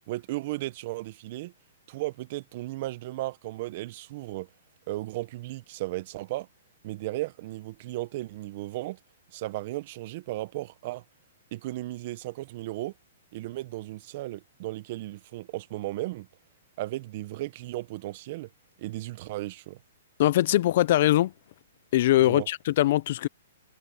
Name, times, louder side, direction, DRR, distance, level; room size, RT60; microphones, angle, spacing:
voice 1, 0.1-1.5 1.9-4.5 4.9-6.5 6.8-9.0 9.3-11.0 11.5-12.9 13.3-16.3 16.8-18.5 18.8-19.8 22.2-22.5, right 17 dB, 50° right, 1.3 m, -35 dB
voice 2, 20.2-21.3 21.9-23.3, left 14 dB, 55° left, 0.6 m, -22 dB
hypercardioid pair, 135°, 0 cm